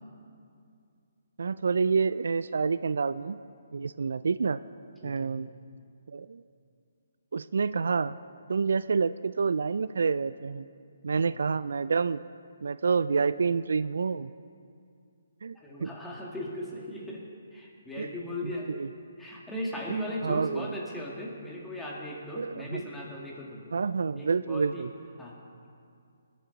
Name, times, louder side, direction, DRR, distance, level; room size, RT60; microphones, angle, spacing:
voice 1, 1.4-3.4 3.7-4.6 5.0-5.5 6.1-6.4 7.3-8.2 8.5-10.7 11.0-12.2 12.6-14.3 15.4-15.9 18.0-18.1 18.4-18.9 20.2-20.7 22.4-22.8 23.7-24.9, right 5 dB, 70° right, 15 dB, 0.3 m, -28 dB
voice 2, 5.0-5.4 15.5-17.2 17.5-18.7 19.2-23.7 24.2-24.9 25.2-25.4, left 1 dB, 5° left, -4 dB, 2.1 m, -38 dB
20.5 x 9.3 x 4.1 m, 2.4 s
figure-of-eight pair, 145°, 0 cm